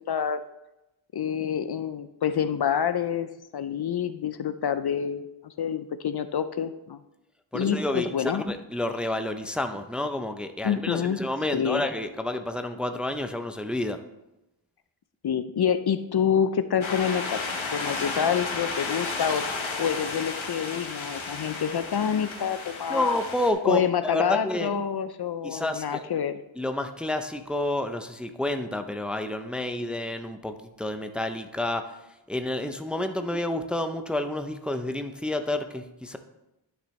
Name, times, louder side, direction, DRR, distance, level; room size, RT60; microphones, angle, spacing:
voice 1, 0.1-0.4 1.1-7.0 7.5-8.4 10.6-11.2 11.5-11.8 15.2-19.5 19.8-23.1 23.6-26.4, left 8 dB, 55° left, 12 dB, 0.5 m, -27 dB
voice 2, 7.5-14.0 22.9-24.8 25.4-26.1 26.5-31.9 32.3-36.2, left 1 dB, ahead, 7 dB, 0.5 m, -29 dB
sound 1, 16.8-23.5, left 3 dB, 80° left, 1.3 m, -33 dB
11.5 x 6.2 x 3.2 m, 0.95 s
wide cardioid pair, 85°, 46 cm